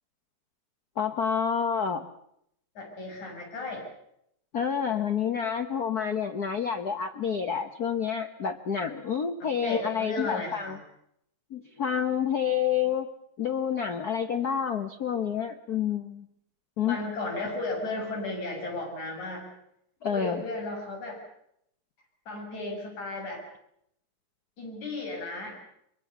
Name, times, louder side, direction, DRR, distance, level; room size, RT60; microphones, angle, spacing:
voice 1, 1.0-2.1 4.5-10.8 11.5-13.1 13.4-16.2 16.8-17.0 20.0-20.4, left 7 dB, 90° left, 8 dB, 0.8 m, -28 dB
voice 2, 2.8-3.8 9.4-10.8 16.9-19.5 20.1-21.2 22.3-23.4 24.6-25.6, left 2 dB, 70° left, 1 dB, 8.0 m, -34 dB
24.0 x 23.0 x 7.0 m, 0.74 s
omnidirectional pair, 3.5 m